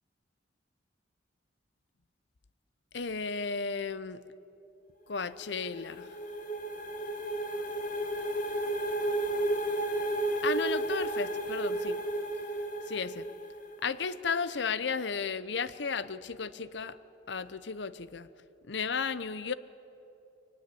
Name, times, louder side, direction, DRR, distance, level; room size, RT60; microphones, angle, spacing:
voice 1, 2.9-4.2 5.1-6.1 10.4-12.0 12.9-13.3 13.8-17.0 17.3-18.3 18.7-19.5, left 5 dB, 65° left, 15 dB, 0.7 m, -34 dB
sound 1, 5.2-13.9, right 1 dB, 45° left, 2.3 m, -33 dB
22.5 x 19.5 x 8.5 m, 2.9 s
head